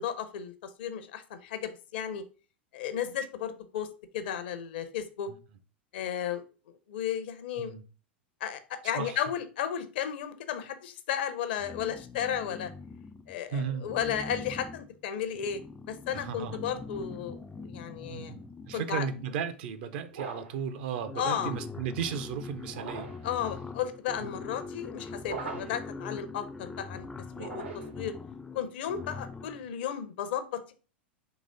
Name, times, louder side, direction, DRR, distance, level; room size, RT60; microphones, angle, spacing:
voice 1, 0.0-2.2 2.7-3.9 4.1-5.3 5.9-6.4 6.9-7.7 8.4-12.7 13.3-15.6 15.9-18.3 18.7-19.1 21.1-21.5 23.2-27.1 27.4-28.2 28.5-30.7, left 9 dB, 60° left, 0.6 m, -34 dB
sound 1, 11.6-13.4 13.8-19.5 20.4-20.5 20.8-29.7, left 4 dB, 10° left, 0.3 m, -43 dB
voice 2, 13.5-13.9 16.1-16.6 18.1-23.1 24.2-24.3 25.5-25.7, right 7 dB, 55° right, 0.5 m, -35 dB
sound 2, 20.1-20.7 22.7-23.3 25.2-25.9 27.3-28.1, right 4 dB, 75° right, 1.0 m, -40 dB
4.0 x 3.0 x 3.8 m
figure-of-eight pair, 90°, 6 cm